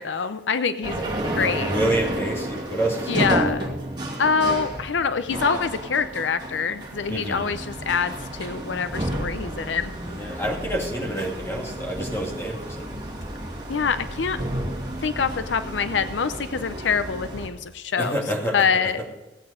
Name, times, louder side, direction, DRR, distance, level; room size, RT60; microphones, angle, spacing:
voice 1, 0.0-1.7 3.1-3.7 4.2-9.9 13.7-14.4 15.0-18.2 18.5-19.0, left 5 dB, 80° left, 11 dB, 0.6 m, -25 dB
sound 1, 0.8-17.5, right 1 dB, 25° right, 2.4 m, -31 dB
voice 2, 1.6-3.3 7.1-7.5 10.1-13.0 18.0-18.6 18.8-18.9, right 1 dB, 15° left, -1 dB, 2.5 m, -28 dB
16.5 x 8.7 x 5.0 m, 1.1 s
head